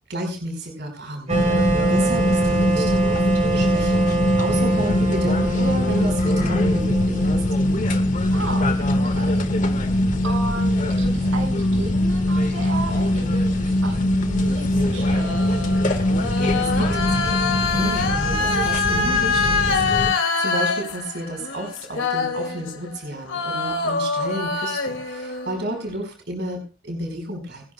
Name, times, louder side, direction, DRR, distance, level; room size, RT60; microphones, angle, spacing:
voice 1, 0.1-4.1 4.4-7.4 16.3-27.6, right 1 dB, 55° right, 2 dB, 5.2 m, -32 dB
sound 1, 1.3-20.1, left 1 dB, 40° left, 1.8 m, -21 dB
Wind instrument woodwind instrument, 1.3-8.2, right 3 dB, 35° right, 2.7 m, -26 dB
voice 2, 8.3-8.7 9.0-9.5 10.2-15.6, right 2 dB, 90° right, 2 dB, 5.9 m, -34 dB
sound 2, 14.3-23.0 23.3-25.9, left 4 dB, 75° left, 2.7 m, -25 dB
28.0 x 11.5 x 2.4 m, 0.34 s
head